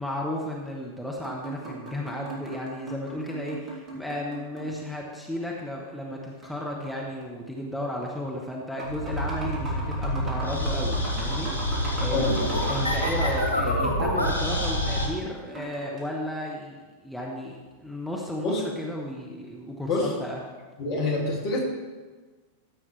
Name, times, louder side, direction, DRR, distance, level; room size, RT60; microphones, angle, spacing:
voice 1, 0.0-12.3 12.7-20.4, left 1 dB, ahead, -3 dB, 1.2 m, -34 dB
sound 1, 1.2-4.9 6.4-7.3 8.1-8.2 8.6-13.7 15.4-16.1, right 1 dB, 25° right, 2.9 m, -39 dB
sound 2, 8.8-15.1, equal, 80° right, 2.0 m, -27 dB
voice 2, 20.8-21.6, left 2 dB, 45° left, -1 dB, 2.4 m, -26 dB
14.0 x 7.8 x 3.3 m, 1.3 s
figure-of-eight pair, 90°, 0 cm